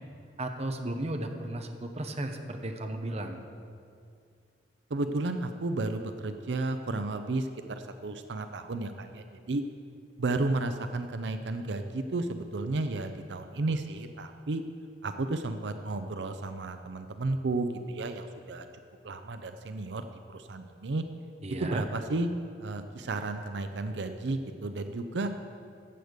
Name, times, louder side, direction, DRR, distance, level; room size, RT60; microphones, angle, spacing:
voice 1, 0.4-3.4 21.4-21.8, right 1 dB, 40° right, 5 dB, 0.9 m, -34 dB
voice 2, 4.9-9.6 10.2-14.6 15.0-18.7 19.0-21.0 21.6-22.3 22.6-25.3, right 2 dB, 90° right, 8 dB, 0.6 m, -33 dB
14.5 x 8.0 x 5.2 m, 2.4 s
head